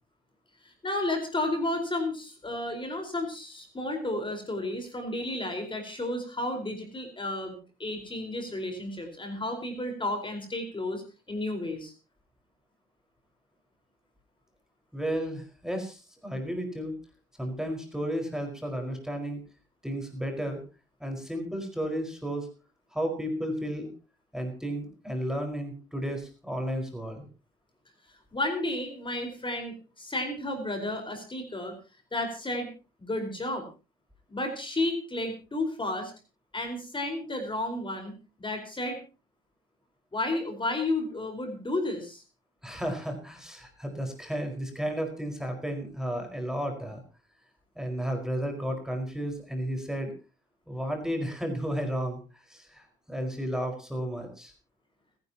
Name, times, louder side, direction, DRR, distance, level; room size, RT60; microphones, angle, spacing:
voice 1, 0.6-11.0 11.3-11.9 28.3-31.7 32.1-32.7 33.0-33.6 34.3-36.1 36.5-39.0 40.1-42.2, left 2 dB, 25° left, 4 dB, 4.6 m, -32 dB
voice 2, 14.9-17.0 17.4-19.4 19.8-20.6 21.0-22.5 22.9-23.9 24.3-27.3 42.6-47.0 47.7-50.1 50.7-54.5, equal, 5° right, 3 dB, 4.8 m, -33 dB
29.5 x 10.5 x 2.9 m, 0.32 s
cardioid pair, 90°, 20 cm